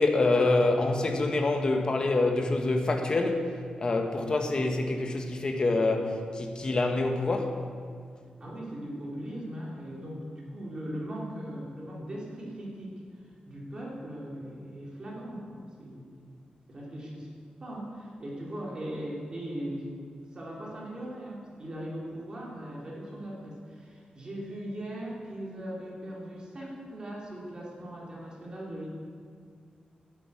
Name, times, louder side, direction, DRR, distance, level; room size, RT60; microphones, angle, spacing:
voice 1, 0.0-7.6, left 2 dB, 30° left, 4 dB, 1.5 m, -26 dB
voice 2, 8.4-12.9 13.5-16.4 16.7-17.3 17.6-19.9 20.3-28.9, right 1 dB, 30° right, -3 dB, 3.1 m, -39 dB
12.0 x 10.5 x 8.5 m, 2.2 s
wide cardioid pair, 180°, 3 cm